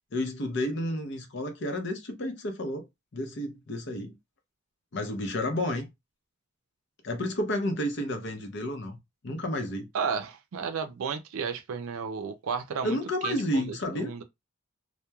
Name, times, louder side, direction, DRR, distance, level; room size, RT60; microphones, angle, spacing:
voice 1, 0.1-2.9 3.1-4.2 4.9-5.9 7.0-9.0 9.2-9.9 12.8-14.1, left 1 dB, 55° left, 0.6 m, -31 dB
voice 2, 9.9-13.0 13.2-14.2, right 6 dB, 90° right, 0.4 m, -33 dB
2.9 x 2.1 x 2.2 m
head